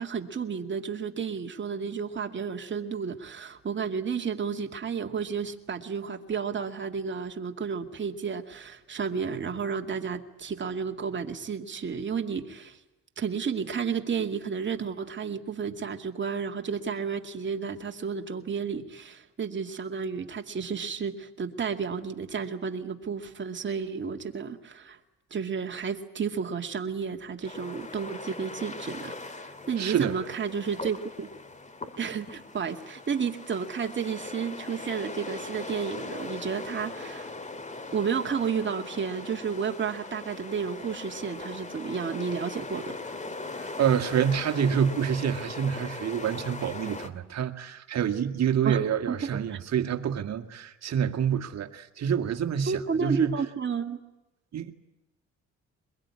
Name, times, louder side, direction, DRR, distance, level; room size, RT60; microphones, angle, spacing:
voice 1, 0.0-12.8 13.2-25.0 25.3-31.3 32.0-37.3 37.9-43.0 48.6-49.6 52.7-54.0, right 6 dB, 40° right, 2.3 m, -32 dB
sound 1, 27.4-47.1, left 3 dB, 25° left, 2.1 m, -40 dB
voice 2, 29.8-30.1 43.6-53.4 54.5-54.7, right 8 dB, 60° right, 2.0 m, -27 dB
22.5 x 22.0 x 9.8 m
cardioid pair, 90°, 30 cm